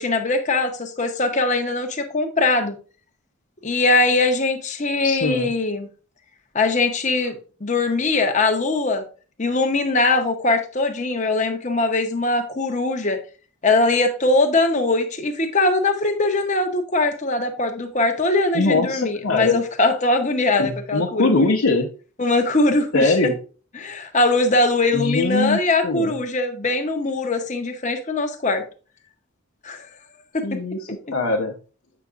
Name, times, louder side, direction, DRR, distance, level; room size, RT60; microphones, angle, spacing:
voice 1, 0.0-2.8 3.6-5.9 6.5-9.0 9.4-13.2 13.6-21.5 22.2-23.2 23.7-28.6 29.6-29.9 30.3-30.4, left 2 dB, 35° left, 0.9 m, -21 dB
voice 2, 5.0-5.5 18.5-19.6 20.6-21.9 22.9-23.3 24.9-26.1 30.4-31.5, left 3 dB, 90° left, 0.8 m, -21 dB
8.1 x 5.9 x 2.5 m
head